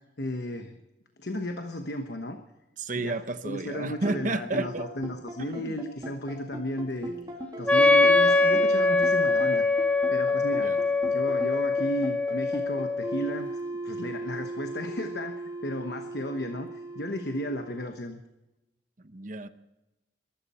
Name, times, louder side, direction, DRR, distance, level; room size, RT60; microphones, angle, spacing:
voice 1, 0.2-0.7 1.2-2.4 2.9-3.2 3.4-7.1 7.6-9.7 10.1-13.6 13.8-18.2, left 1 dB, 60° left, 6 dB, 1.1 m, -34 dB
voice 2, 2.8-4.9 5.5-5.8 10.6-10.8 19.0-19.5, right 2 dB, 45° right, 11 dB, 0.9 m, -32 dB
sound 1, 3.9-17.9, right 1 dB, 20° right, 2.1 m, -38 dB
Wind instrument woodwind instrument, 7.7-13.3, left 3 dB, 5° left, 0.5 m, -23 dB
22.0 x 13.0 x 4.3 m, 0.97 s
head